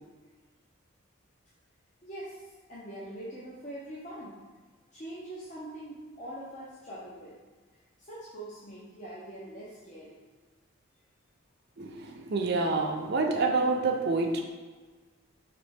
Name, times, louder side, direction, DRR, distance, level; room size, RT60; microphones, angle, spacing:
voice 1, 2.0-4.4 4.9-7.4 7.7-10.2, right 1 dB, 35° left, -8 dB, 0.7 m, -43 dB
voice 2, 11.8-14.4, right 3 dB, 55° right, 2 dB, 0.6 m, -27 dB
5.1 x 3.0 x 3.4 m, 1.4 s
head